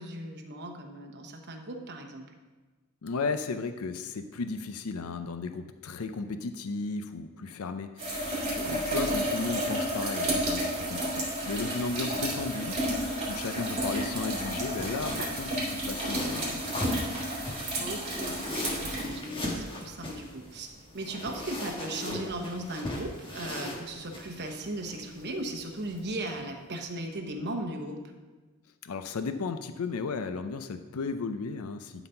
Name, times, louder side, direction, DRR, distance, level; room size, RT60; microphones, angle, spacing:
voice 1, 0.0-2.3 8.5-9.2 17.7-28.0, right 1 dB, 50° right, 4 dB, 1.0 m, -37 dB
voice 2, 3.0-17.1 28.8-32.1, left 4 dB, 80° left, 9 dB, 0.5 m, -35 dB
sound 1, 8.0-19.8 21.3-21.4 26.3-26.4, right 1 dB, 30° right, 2.8 m, -31 dB
sound 2, 14.1-26.3, left 1 dB, 25° left, 1.4 m, -39 dB
11.5 x 4.0 x 5.6 m, 1.3 s
head